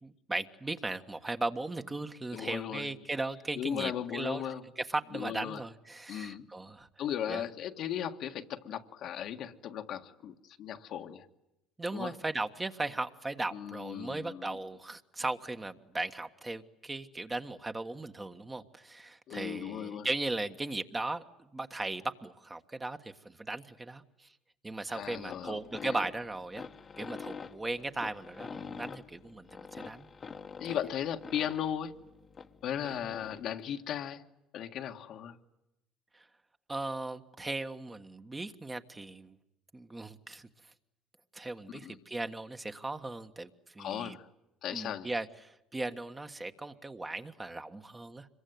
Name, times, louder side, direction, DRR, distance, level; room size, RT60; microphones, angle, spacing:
voice 1, 0.0-4.4 4.8-6.9 7.3-7.4 11.8-21.2 21.5-24.3 24.6-26.6 27.0-30.1 30.7-30.8 32.8-33.1 36.1-36.3 36.7-39.4 39.7-40.5 41.3-44.2 44.7-48.3, right 2 dB, 15° right, 1.6 m, -37 dB
voice 2, 2.3-2.9 3.5-4.6 5.1-5.6 6.1-6.5 7.0-11.3 11.9-12.1 13.5-14.6 19.3-20.1 24.9-26.0 30.6-32.0 32.6-34.2 34.5-35.4 41.8-42.0 43.8-44.3 44.6-45.1, left 9 dB, 60° left, 1.7 m, -37 dB
sound 1, 25.0-33.5, left 5 dB, 35° left, 1.4 m, -46 dB
26.0 x 23.0 x 9.4 m
supercardioid pair, 90°, 0 cm